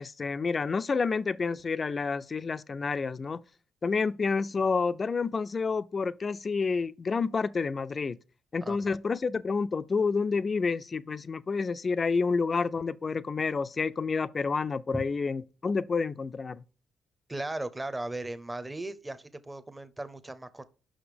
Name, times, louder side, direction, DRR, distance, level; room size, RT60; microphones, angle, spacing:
voice 1, 0.0-3.4 3.8-8.2 8.5-16.6, left 4 dB, 35° left, 0.4 m, -29 dB
voice 2, 8.6-8.9 14.9-15.0 17.3-20.6, right 2 dB, 15° right, 0.7 m, -37 dB
5.6 x 4.9 x 5.1 m
cardioid pair, 90°, 0 cm